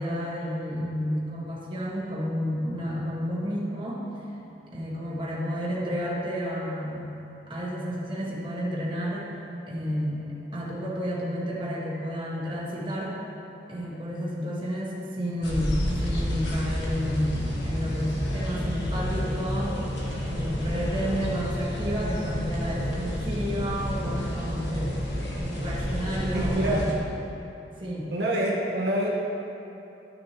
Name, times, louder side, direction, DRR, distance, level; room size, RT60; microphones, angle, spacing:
voice 1, 0.0-4.1 4.7-7.2 7.5-9.3 9.7-13.2 13.7-19.8 20.2-25.0 25.3-27.0 27.8-28.1, equal, 30° right, -6 dB, 1.5 m, -31 dB
sound 1, 15.4-26.9, equal, 80° left, 1.4 m, -30 dB
voice 2, 26.3-26.9 28.1-29.1, right 1 dB, 70° right, -3 dB, 1.0 m, -26 dB
12.0 x 6.2 x 3.0 m, 2.9 s
head